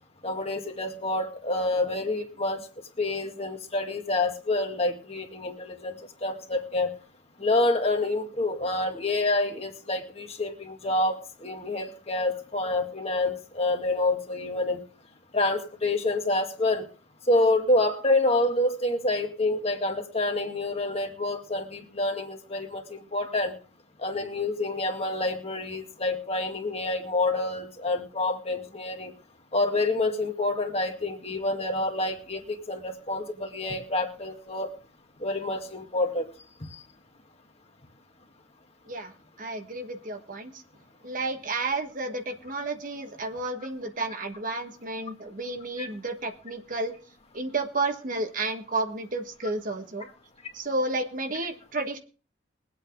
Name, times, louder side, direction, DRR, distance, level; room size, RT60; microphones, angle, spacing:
voice 1, 0.2-2.6 3.0-5.9 6.2-6.9 7.4-14.8 15.3-16.9 17.3-23.5 24.0-29.1 29.5-34.7 35.2-36.3 36.6-36.8 45.8-45.9, left 2 dB, 30° left, 4 dB, 2.0 m, -27 dB
voice 2, 39.4-40.6 41.0-46.9 47.3-50.1 50.5-52.0, right 2 dB, 45° right, 6 dB, 1.4 m, -31 dB
22.5 x 8.4 x 3.6 m, 0.36 s
head